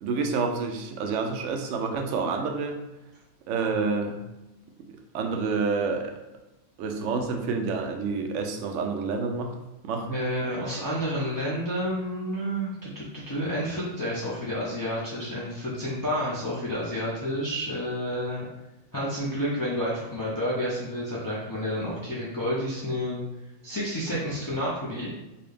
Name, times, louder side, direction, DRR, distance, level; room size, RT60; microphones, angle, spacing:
voice 1, 0.0-2.8 3.5-4.2 4.9-6.2 6.8-9.5 9.8-10.2, right 4 dB, 70° right, 4 dB, 0.8 m, -28 dB
voice 2, 10.1-18.4 18.9-23.2 23.6-25.1, equal, 30° left, -8 dB, 0.3 m, -30 dB
4.0 x 2.3 x 3.3 m, 0.99 s
omnidirectional pair, 1.5 m